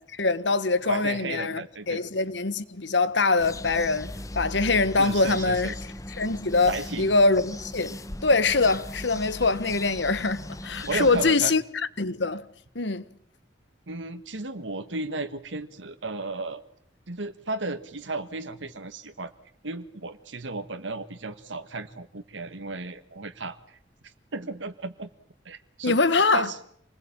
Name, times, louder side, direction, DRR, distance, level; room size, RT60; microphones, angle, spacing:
voice 1, 0.1-5.7 6.2-11.6 12.0-12.5 12.7-13.0 25.8-26.5, left 3 dB, 70° left, 1.5 m, -24 dB
voice 2, 0.8-2.0 5.0-5.7 6.7-7.1 10.9-11.5 13.9-16.6 17.1-19.3 19.6-23.8 24.0-25.1 25.4-26.0 26.3-26.6, right 3 dB, 85° right, 1.5 m, -34 dB
sound 1, 3.4-11.3, left 1 dB, 20° left, 1.2 m, -38 dB
27.5 x 21.0 x 8.9 m
head